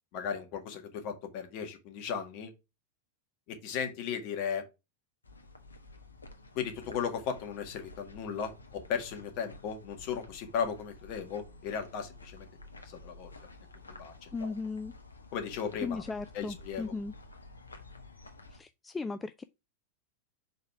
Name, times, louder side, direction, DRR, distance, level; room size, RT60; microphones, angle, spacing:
voice 1, 0.1-2.5 3.5-4.6 6.6-12.5 12.9-13.3 14.0-14.5 15.3-16.0 16.3-16.9, left 7 dB, 45° left, 1.7 m, -36 dB
sound 1, 5.2-18.6, left 2 dB, 75° left, 1.1 m, -51 dB
voice 2, 14.3-14.9 15.8-17.1 18.5-19.4, left 4 dB, 10° left, 0.4 m, -37 dB
5.0 x 4.2 x 5.9 m
figure-of-eight pair, 90°, 0 cm